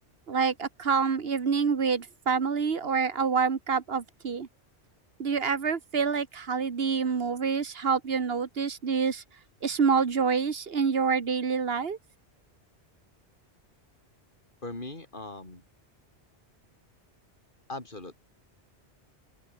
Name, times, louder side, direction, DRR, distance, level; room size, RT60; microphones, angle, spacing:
voice 1, 0.3-4.5 5.2-9.2 9.6-12.0, right 5 dB, 60° right, 1.6 m, -27 dB
voice 2, 14.6-15.6 17.7-18.2, left 2 dB, 45° left, 4.3 m, -39 dB
open air
omnidirectional pair, 1.2 m